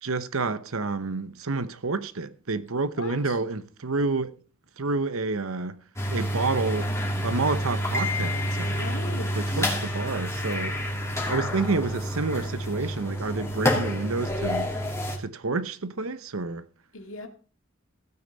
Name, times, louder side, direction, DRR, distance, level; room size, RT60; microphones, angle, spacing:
voice 1, 0.0-4.3 4.8-5.8 6.1-6.9 7.2-8.9 9.4-10.8 11.3-14.7 15.2-16.6, right 3 dB, 85° right, 1.0 m, -29 dB
voice 2, 3.0-3.4 8.6-9.6 16.9-17.3, left 2 dB, 65° left, 2.5 m, -38 dB
sound 1, 6.0-15.2, equal, 15° left, 2.5 m, -28 dB
16.0 x 8.7 x 4.1 m
head